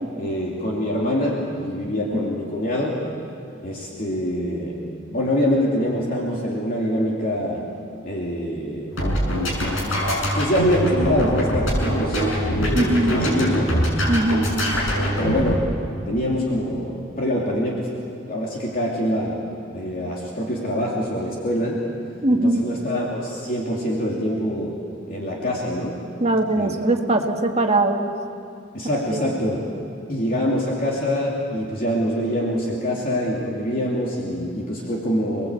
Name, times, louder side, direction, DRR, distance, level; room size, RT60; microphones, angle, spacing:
voice 1, 0.2-3.0 3.6-4.8 5.1-7.6 8.0-9.2 9.9-10.0 10.4-12.2 12.5-13.7 14.9-15.7 16.1-17.9 18.3-19.4 19.7-21.8 22.3-24.8 25.1-26.0 26.6-26.8 28.7-29.7 30.1-35.5, equal, 50° left, -3 dB, 2.9 m, -24 dB
sound 1, 8.9-15.6, equal, 90° left, 7.2 m, -23 dB
voice 2, 12.7-13.2 14.1-14.5 22.2-22.6 26.2-28.1 29.1-29.4, right 1 dB, 35° right, 3 dB, 1.8 m, -21 dB
28.0 x 20.5 x 8.3 m, 2.5 s
head